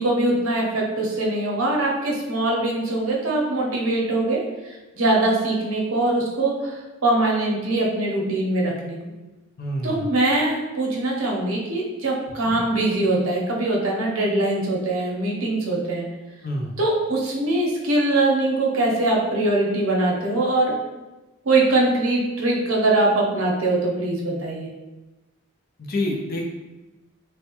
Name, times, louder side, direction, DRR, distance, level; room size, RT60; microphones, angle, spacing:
voice 1, 0.0-4.4 4.6-9.0 9.8-16.1 16.8-20.7 21.4-24.7, right 2 dB, 85° right, -2 dB, 0.7 m, -22 dB
voice 2, 9.6-10.1 16.4-16.7 25.8-26.4, left 1 dB, 45° left, 1 dB, 0.4 m, -27 dB
3.3 x 2.1 x 2.9 m, 1.1 s
head